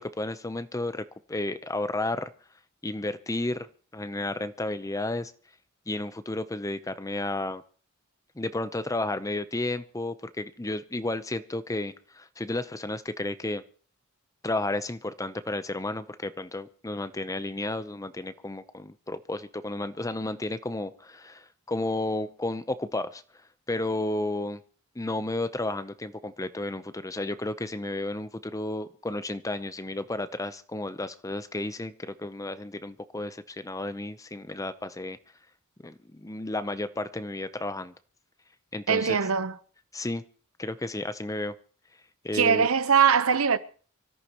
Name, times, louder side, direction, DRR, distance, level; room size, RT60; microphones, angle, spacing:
voice 1, 0.0-2.3 2.8-3.7 3.9-5.3 5.9-7.6 8.4-13.6 14.4-23.2 23.7-24.6 25.0-35.2 35.8-37.9 38.7-39.2 39.9-40.2 40.6-41.5 42.2-42.7, left 2 dB, 15° left, 0.7 m, -32 dB
voice 2, 38.9-39.5 42.3-43.6, right 6 dB, 80° right, 0.9 m, -21 dB
25.5 x 13.5 x 3.0 m
head